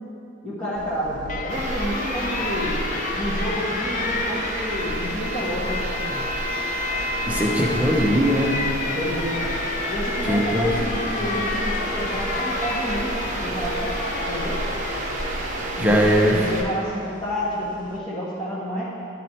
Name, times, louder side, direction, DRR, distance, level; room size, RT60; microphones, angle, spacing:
voice 1, 0.4-2.8 3.2-6.3 8.8-9.5 9.9-14.0 14.3-14.6 15.8-18.9, equal, 20° left, -10 dB, 1.3 m, -29 dB
Alarm, 0.8-18.0, left 4 dB, 40° left, 0.3 m, -32 dB
sound 1, 1.5-16.6, right 1 dB, 35° right, 0.8 m, -30 dB
voice 2, 7.2-8.5 10.3-10.7 15.8-16.3, equal, 5° right, -2 dB, 0.8 m, -20 dB
12.5 x 4.2 x 4.4 m, 2.9 s
head